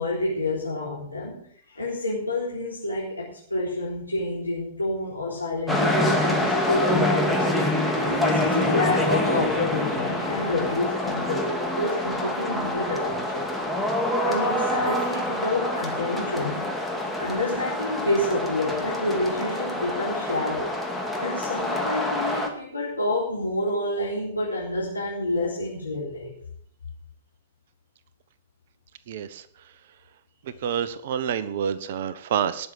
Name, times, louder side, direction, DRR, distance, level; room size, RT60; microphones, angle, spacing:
voice 1, 0.0-1.5 1.7-7.5 7.7-13.5 14.3-16.7 17.2-20.7 21.2-26.4, left 1 dB, 90° left, -6 dB, 3.8 m, -28 dB
sound 1, 5.7-22.5, left 1 dB, ahead, 2.3 m, -26 dB
voice 2, 29.1-29.4 30.6-32.7, right 8 dB, 55° right, 14 dB, 1.1 m, -28 dB
19.5 x 6.8 x 6.2 m, 0.62 s
figure-of-eight pair, 105°, 0 cm